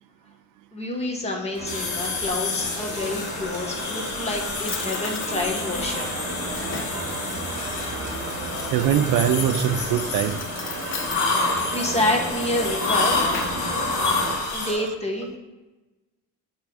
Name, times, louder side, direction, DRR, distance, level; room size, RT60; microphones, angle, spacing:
voice 1, 0.7-6.1 11.7-13.2 14.5-15.4, left 1 dB, 20° left, 0 dB, 1.4 m, -28 dB
sound 1, 1.5-14.4, right 2 dB, 35° right, 2.0 m, -33 dB
sound 2, 1.7-14.7, left 3 dB, 60° left, 1.6 m, -29 dB
Drawer open or close, 2.8-3.7 4.3-4.4 4.7-5.3 6.0-7.1 8.9-9.5 10.2-11.2 12.6-13.7, left 5 dB, 35° left, 0.9 m, -37 dB
voice 2, 8.7-10.4 14.5-14.9, right 10 dB, 65° right, 9 dB, 0.5 m, -22 dB
8.4 x 3.5 x 4.9 m, 1.1 s
cardioid pair, 125°, 34 cm